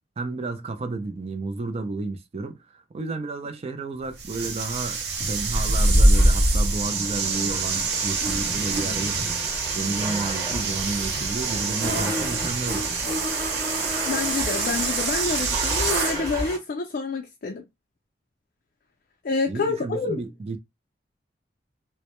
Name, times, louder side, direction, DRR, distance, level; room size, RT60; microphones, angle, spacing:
voice 1, 0.2-9.5 9.7-12.9 19.5-20.6, right 3 dB, 35° right, 0.4 m, -32 dB
sound 1, 4.2-16.2, right 2 dB, 65° right, 0.8 m, -24 dB
Domestic sounds home sounds, 5.9-16.6, right 2 dB, 20° right, 1.0 m, -35 dB
voice 2, 14.0-17.6 19.2-20.2, left 4 dB, 55° left, 0.4 m, -28 dB
2.1 x 2.0 x 2.9 m
head